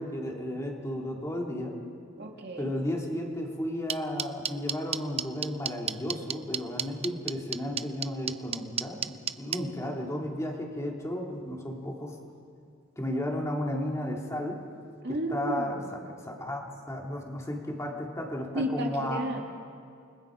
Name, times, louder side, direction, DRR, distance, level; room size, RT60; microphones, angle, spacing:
voice 1, 0.0-1.7 2.6-12.2 13.0-14.6 15.1-15.8 16.2-16.6 16.9-19.2, left 1 dB, 15° left, 0 dB, 2.6 m, -33 dB
voice 2, 2.2-2.7 15.0-16.1 18.5-19.4, equal, 55° right, 1 dB, 2.1 m, -33 dB
sound 1, 3.9-9.6, right 8 dB, 30° right, 0.5 m, -29 dB
29.0 x 21.0 x 5.1 m, 2.3 s
head